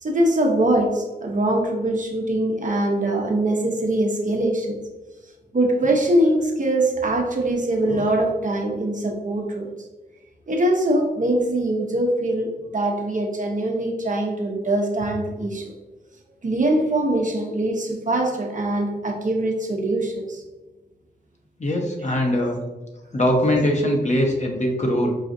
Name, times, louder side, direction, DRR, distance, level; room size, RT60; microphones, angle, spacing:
voice 1, 0.0-4.8 5.5-9.7 10.5-15.7 16.4-20.4 23.4-23.5, right 1 dB, 45° right, 1 dB, 0.7 m, -22 dB
voice 2, 21.6-22.6 23.1-25.1, left 1 dB, 40° left, 1 dB, 0.9 m, -21 dB
4.8 x 2.3 x 2.6 m, 1.1 s
cardioid pair, 45°, 18 cm